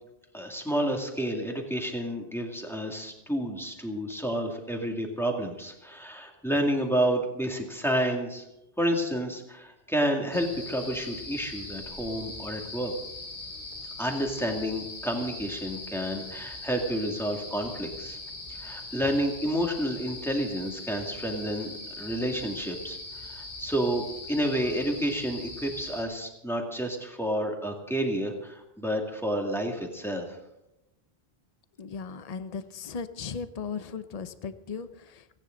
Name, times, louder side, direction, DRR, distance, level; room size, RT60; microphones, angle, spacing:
voice 1, 0.3-8.5 8.8-12.9 14.0-18.2 18.5-30.4, equal, ahead, 1 dB, 2.2 m, -30 dB
sound 1, 10.3-26.0, left 2 dB, 80° left, 3.3 m, -41 dB
voice 2, 31.8-35.2, left 5 dB, 40° left, 12 dB, 0.8 m, -37 dB
30.0 x 10.0 x 3.9 m, 0.88 s
omnidirectional pair, 1.0 m